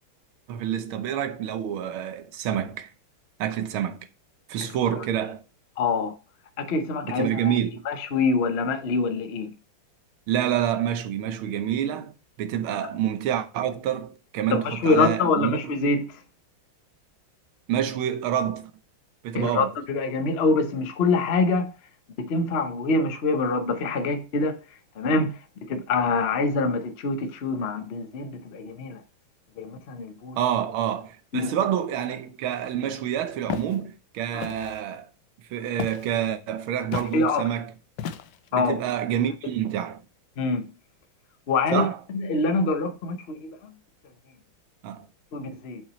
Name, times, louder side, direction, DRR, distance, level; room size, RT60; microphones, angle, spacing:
voice 1, 0.5-2.9 3.4-4.0 4.5-5.4 7.0-7.8 10.3-15.6 17.7-18.7 19.2-19.7 30.4-35.1 35.5-37.7 38.5-40.0 41.7-42.0 44.8-45.1, right 10 dB, 90° right, 1.7 m, -27 dB
voice 2, 5.8-6.2 6.6-7.5 7.9-9.5 14.5-16.1 19.3-21.7 22.2-24.6 25.0-25.4 25.7-29.0 29.6-30.4 31.3-31.5 34.3-34.5 36.9-37.5 38.5-38.8 40.4-40.6 41.5-43.5 45.3-45.8, left 3 dB, 50° left, 0.8 m, -25 dB
Walk footsteps, 33.5-33.8 34.4-34.8 35.8-36.1 36.9-37.2 38.0-38.5, left 8 dB, 70° left, 1.1 m, -33 dB
7.1 x 5.8 x 3.1 m
omnidirectional pair, 2.2 m